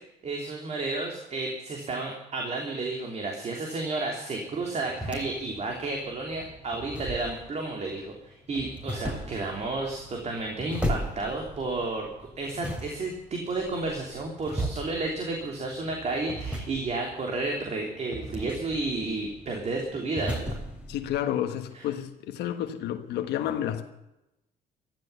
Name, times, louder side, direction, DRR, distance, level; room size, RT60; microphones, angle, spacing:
voice 1, 0.2-20.6 21.7-21.9, right 3 dB, 40° right, 3.2 m, -32 dB
sound 1, 4.5-21.2, equal, 5° right, 3.6 m, -37 dB
voice 2, 20.9-23.9, left 11 dB, 80° left, 1.4 m, -30 dB
14.5 x 14.0 x 6.9 m
cardioid pair, 110°, 17 cm